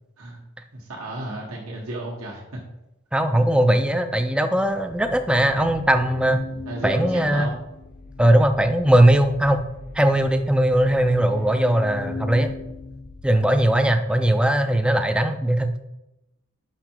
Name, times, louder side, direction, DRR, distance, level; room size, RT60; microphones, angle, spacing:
voice 1, 0.7-2.6 6.6-7.6, right 1 dB, 80° right, -4 dB, 1.4 m, -33 dB
voice 2, 3.1-6.4 6.8-7.5 8.2-9.7 9.9-12.5 13.2-15.8, right 1 dB, 5° right, 8 dB, 0.4 m, -19 dB
sound 1, 4.6-13.9, left 4 dB, 45° left, 0.7 m, -39 dB
5.8 x 5.6 x 4.5 m, 0.91 s
head